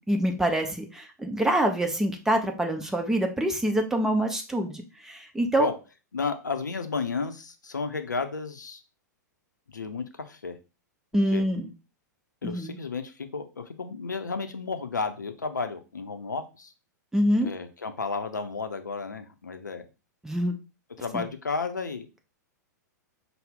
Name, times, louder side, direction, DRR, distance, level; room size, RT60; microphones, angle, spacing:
voice 1, 0.0-5.7 11.1-11.7 12.4-12.8 17.1-17.5 20.2-20.6 21.1-21.2, right 1 dB, 5° right, 3 dB, 0.6 m, -26 dB
voice 2, 6.1-8.8 9.7-10.6 11.3-11.4 12.4-16.7 17.4-19.8 21.0-22.1, left 4 dB, 75° left, 8 dB, 0.5 m, -32 dB
5.5 x 2.0 x 3.6 m, 0.30 s
figure-of-eight pair, 100°, 10 cm